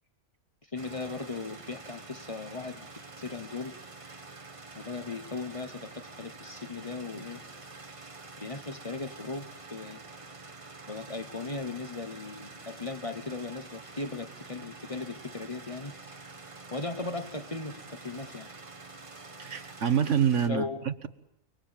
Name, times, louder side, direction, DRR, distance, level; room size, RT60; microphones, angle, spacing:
voice 1, 0.7-2.9 3.2-3.7 4.7-7.4 8.4-10.0 10.9-15.9 16.7-18.5 20.5-20.9, left 3 dB, 30° left, 9 dB, 1.1 m, -37 dB
sound 1, 0.8-20.5, right 3 dB, 30° right, 1.1 m, -47 dB
voice 2, 19.4-21.1, right 8 dB, 75° right, 10 dB, 1.7 m, -27 dB
30.0 x 22.0 x 8.9 m, 0.82 s
omnidirectional pair, 1.3 m